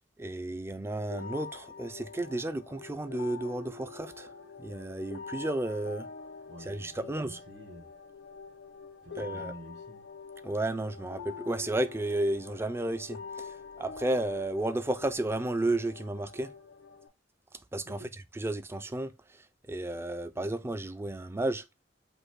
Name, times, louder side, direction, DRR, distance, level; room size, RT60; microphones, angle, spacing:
voice 1, 0.2-4.3 4.6-6.1 6.7-7.3 9.2-9.5 10.4-16.5 17.7-18.0 18.4-21.6, right 1 dB, 15° right, 0.3 m, -32 dB
sound 1, 1.1-17.1, left 5 dB, 90° left, 0.8 m, -45 dB
voice 2, 6.5-8.0 9.0-10.1 17.8-18.1, right 1 dB, 55° right, 1.5 m, -49 dB
5.2 x 2.1 x 4.5 m
head